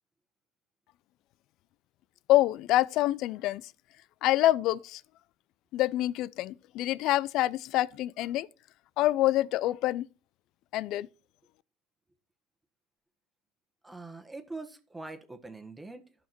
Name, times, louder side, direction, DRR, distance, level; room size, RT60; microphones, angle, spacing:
voice 1, 2.3-3.6 4.2-5.0 5.7-8.5 9.0-10.1 10.7-11.1, left 15 dB, 60° left, 0.4 m, -26 dB
voice 2, 13.8-16.1, right 3 dB, 10° right, 1.4 m, -43 dB
12.5 x 5.8 x 4.5 m
supercardioid pair, 100°, 0 cm